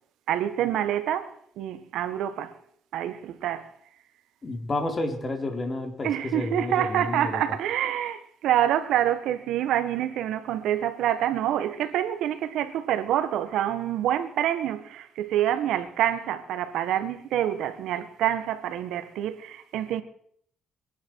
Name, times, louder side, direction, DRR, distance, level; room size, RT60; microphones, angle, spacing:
voice 1, 0.3-1.3 1.6-2.6 2.9-3.7 6.0-20.0, right 11 dB, 85° right, 1.5 m, -27 dB
voice 2, 4.4-7.4, left 2 dB, 35° left, 3.7 m, -30 dB
24.0 x 11.0 x 4.7 m
cardioid pair, 90°, 0 cm